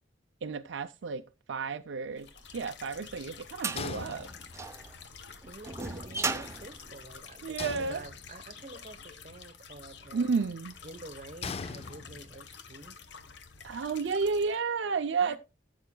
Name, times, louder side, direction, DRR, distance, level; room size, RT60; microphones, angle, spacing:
voice 1, 0.4-1.2 1.5-2.3 2.5-4.3 7.4-8.0 10.1-10.7 13.6-15.4, right 5 dB, 70° right, 0.5 m, -31 dB
sound 1, 2.2-14.6, left 6 dB, 65° left, 1.0 m, -49 dB
sound 2, 2.6-7.9, right 4 dB, 15° right, 0.6 m, -37 dB
sound 3, 3.8-4.8 7.6-8.6 11.4-12.5, left 5 dB, 30° left, 0.4 m, -40 dB
voice 2, 5.4-10.4 10.8-13.0 15.2-15.4, right 2 dB, 40° right, 1.0 m, -48 dB
15.0 x 7.9 x 2.2 m
head